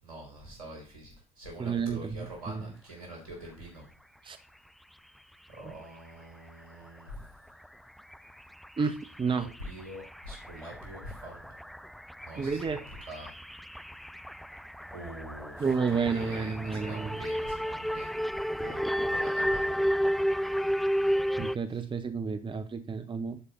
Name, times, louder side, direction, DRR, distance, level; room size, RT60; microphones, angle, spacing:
voice 1, 0.0-3.9 5.5-7.2 9.6-11.5 12.2-13.3 14.9-18.1 18.6-18.8 19.1-19.9 21.7-21.9, equal, 90° right, -1 dB, 4.1 m, -45 dB
voice 2, 1.6-2.2 2.5-2.6 4.2-4.4 5.6-5.7 8.8-9.5 12.4-12.8 15.6-17.2 21.4-23.4, right 5 dB, 30° right, 9 dB, 1.0 m, -31 dB
sound 1, 6.5-6.6 7.0-7.1 7.5-7.7 8.0-21.6, equal, ahead, 0.3 m, -32 dB
11.5 x 5.2 x 4.2 m, 0.33 s
hypercardioid pair, 55°, 18 cm